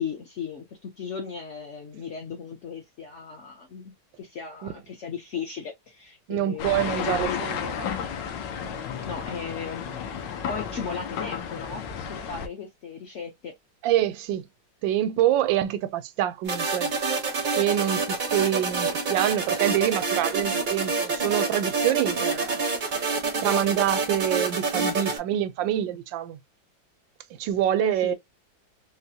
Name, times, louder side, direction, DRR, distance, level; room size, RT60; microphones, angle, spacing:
voice 1, 0.0-7.7 9.0-10.1 10.5-11.8 12.1-13.5 27.8-28.1, left 6 dB, 60° left, 0.8 m, -36 dB
voice 2, 6.3-7.9 13.8-14.4 14.8-16.9 17.6-22.6 23.4-26.4 27.4-28.2, right 11 dB, 85° right, 1.3 m, -26 dB
sound 1, 6.6-12.5, left 7 dB, 75° left, 1.3 m, -32 dB
sound 2, 16.5-25.2, right 4 dB, 50° right, 0.6 m, -27 dB
4.1 x 2.1 x 2.6 m
omnidirectional pair, 2.0 m